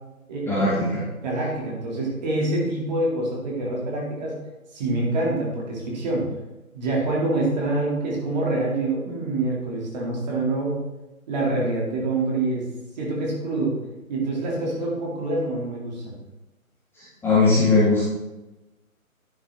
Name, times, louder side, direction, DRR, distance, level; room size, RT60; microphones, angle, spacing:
voice 1, 0.5-1.0 17.2-18.0, left 3 dB, 5° left, -10 dB, 1.8 m, -19 dB
voice 2, 1.2-4.4 4.7-6.3 6.7-10.8 11.3-12.7 13.0-13.8 14.1-16.2, right 2 dB, 30° right, -3 dB, 2.5 m, -26 dB
11.0 x 7.2 x 3.5 m, 1.1 s
figure-of-eight pair, 150°, 43 cm